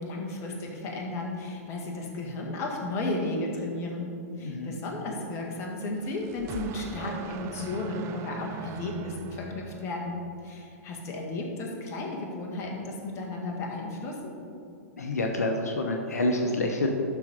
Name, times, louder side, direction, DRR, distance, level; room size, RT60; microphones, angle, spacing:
voice 1, 0.0-4.1 4.4-14.4, left 2 dB, 35° left, -1 dB, 1.7 m, -34 dB
voice 2, 4.4-4.7 15.0-16.9, left 2 dB, 80° left, 3 dB, 0.8 m, -27 dB
sound 1, 5.8-10.4, right 8 dB, 30° right, 0.4 m, -42 dB
11.5 x 4.3 x 5.1 m, 2.5 s
figure-of-eight pair, 105°, 8 cm